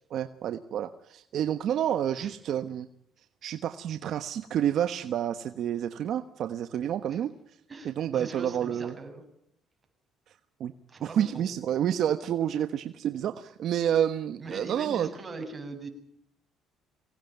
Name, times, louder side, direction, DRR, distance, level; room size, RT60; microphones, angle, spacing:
voice 1, 0.1-2.9 3.4-7.6 7.8-9.0 10.3-10.4 10.6-10.7 11.0-15.1, right 10 dB, 65° right, 10 dB, 1.2 m, -29 dB
voice 2, 7.7-9.2 10.9-11.4 14.4-15.9, right 3 dB, 25° right, 5 dB, 7.8 m, -41 dB
24.5 x 19.0 x 9.4 m, 0.70 s
cardioid pair, 95°, 0 cm